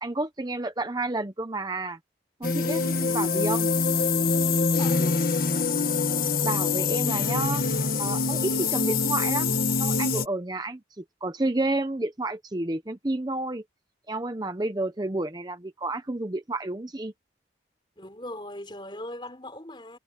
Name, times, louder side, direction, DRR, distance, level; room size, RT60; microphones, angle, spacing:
voice 1, 0.0-2.0 2.4-3.7 6.4-7.6 8.0-13.6 14.1-17.1, right 2 dB, 20° right, 0.7 m, -30 dB
sound 1, 2.4-10.3, left 4 dB, 50° left, 1.5 m, -25 dB
voice 2, 4.8-5.2 18.0-20.0, left 1 dB, 25° left, 4.8 m, -39 dB
head